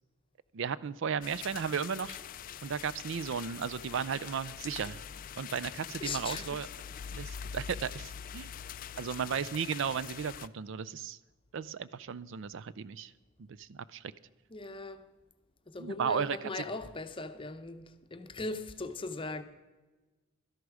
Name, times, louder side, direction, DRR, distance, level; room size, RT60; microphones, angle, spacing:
voice 1, 0.5-2.2 2.6-5.0 5.4-6.7 7.1-8.5 9.0-11.2 11.5-13.1 13.4-14.0 15.8-16.6, right 7 dB, 60° right, 0.4 m, -35 dB
sound 1, 1.2-10.5, left 8 dB, 40° left, 0.3 m, -44 dB
voice 2, 6.0-6.6 14.5-15.0 15.7-17.9 18.1-19.4, left 3 dB, 25° left, 0.7 m, -39 dB
13.0 x 11.0 x 4.8 m
head